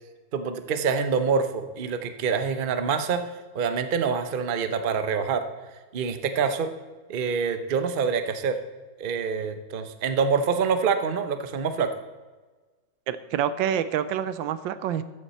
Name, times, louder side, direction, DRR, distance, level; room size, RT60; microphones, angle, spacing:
voice 1, 0.3-3.2 3.5-5.4 5.9-6.7 7.1-8.6 9.0-11.9, right 6 dB, 45° right, 9 dB, 0.6 m, -26 dB
voice 2, 13.1-15.0, right 9 dB, 85° right, 13 dB, 1.4 m, -27 dB
13.5 x 8.7 x 4.2 m, 1.3 s
omnidirectional pair, 2.0 m